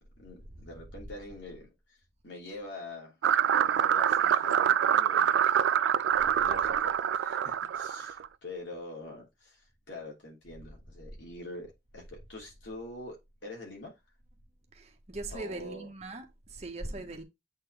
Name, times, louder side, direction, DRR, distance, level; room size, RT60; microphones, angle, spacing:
voice 1, 0.2-1.7 2.2-3.2 3.6-5.5 6.4-13.9 15.3-15.9 16.8-17.2, left 2 dB, 80° left, 3.1 m, -45 dB
sound 1, 3.2-8.3, right 9 dB, 80° right, 0.3 m, -25 dB
voice 2, 14.7-17.2, right 2 dB, 35° right, 1.2 m, -40 dB
8.1 x 4.2 x 3.4 m
head